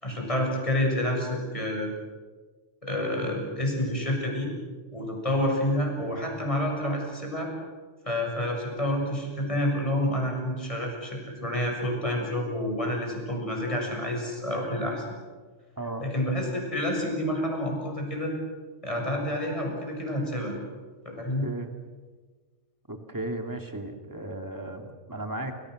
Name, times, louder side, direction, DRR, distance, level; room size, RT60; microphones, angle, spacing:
voice 1, 0.0-1.9 2.8-4.5 4.9-7.5 8.1-15.1 16.0-18.4 18.8-20.6 21.1-21.4, left 1 dB, 25° left, 1 dB, 7.2 m, -28 dB
voice 2, 15.8-16.1 21.1-21.7 22.9-25.5, right 1 dB, 15° right, 5 dB, 2.6 m, -35 dB
29.0 x 27.5 x 6.6 m, 1.4 s
omnidirectional pair, 1.2 m